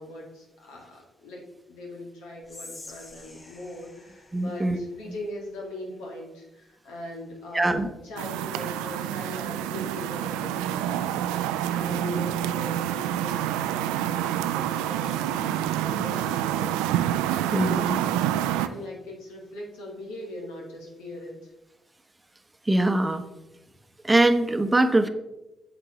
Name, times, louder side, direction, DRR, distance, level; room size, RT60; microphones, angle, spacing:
voice 1, 0.0-1.4 1.7-16.8 17.2-18.3 18.6-21.4, left 1 dB, 80° left, -2 dB, 1.7 m, -40 dB
Whispering, 2.4-5.7, left 2 dB, 35° left, 1.4 m, -48 dB
voice 2, 4.3-4.8 7.5-7.9 17.5-17.8 22.7-23.2 24.0-25.1, right 2 dB, 20° right, 9 dB, 0.8 m, -22 dB
sound 1, 8.2-18.7, right 11 dB, 85° right, 0.3 m, -27 dB
8.2 x 6.9 x 3.0 m, 0.99 s
hypercardioid pair, 45°, 0 cm